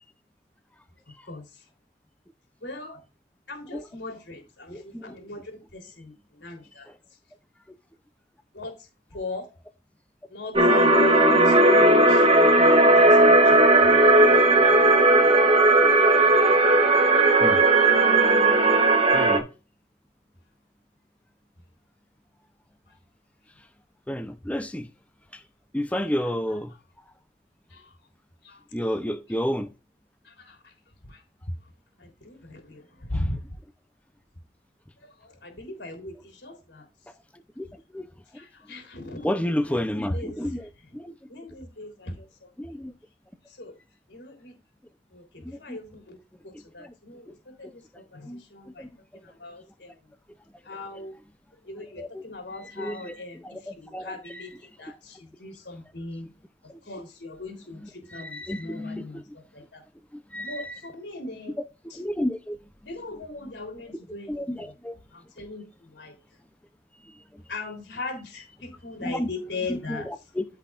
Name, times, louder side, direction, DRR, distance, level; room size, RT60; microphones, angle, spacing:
voice 1, 2.6-3.0 3.5-6.1 6.4-6.9 8.5-8.7 9.1-9.5 10.3-12.3 13.0-13.6 14.4-14.5 27.7-27.8 28.4-28.6 30.3-30.6 31.1-31.2 32.0-32.8 33.1-33.4 35.4-36.9 38.3-39.8 40.1-40.4 41.3-42.3 43.6-43.7 44.1-44.5 45.1-46.2 46.4-47.3 47.6-48.9 49.2-50.0 50.7-51.1 51.7-53.4 53.8-56.3 56.9-59.2 59.5-59.8 60.4-61.5 62.9-64.7 65.1-65.7 65.9-66.2 67.5-70.1, left 2 dB, 75° left, 3.5 m, -38 dB
voice 2, 4.7-5.2 17.4-17.6 18.1-18.2 19.1-19.5 24.1-24.9 25.7-26.7 28.7-29.7 33.1-33.2 37.6-37.7 37.9-38.0 39.2-41.1 42.6-42.9 45.4-45.8 46.8-46.9 48.3-48.4 48.8-48.9 51.0-51.1 52.0-52.2 52.6-53.2 53.4-54.5 58.1-59.2 60.3-60.8 61.9-62.6 64.3-65.0 69.0-69.3 69.7-70.5, left 1 dB, 10° left, 0.6 m, -31 dB
sound 1, 10.6-19.4, right 2 dB, 35° right, 1.5 m, -17 dB
14.5 x 5.7 x 2.5 m
head